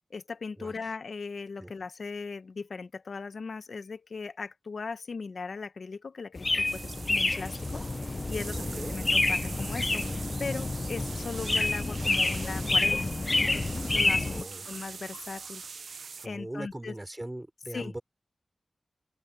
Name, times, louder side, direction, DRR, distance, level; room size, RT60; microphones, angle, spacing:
voice 1, 0.1-13.1 13.4-14.4 14.6-16.0 16.2-16.9 17.7-17.9, left 4 dB, 80° left, 0.9 m, -39 dB
sound 1, 6.4-14.4, left 2 dB, 40° left, 0.6 m, -28 dB
sound 2, 6.7-16.3, right 5 dB, 90° right, 0.7 m, -43 dB
voice 2, 8.6-9.0 14.2-14.6 16.2-18.0, right 1 dB, 20° right, 3.7 m, -40 dB
open air
cardioid pair, 55°, 0 cm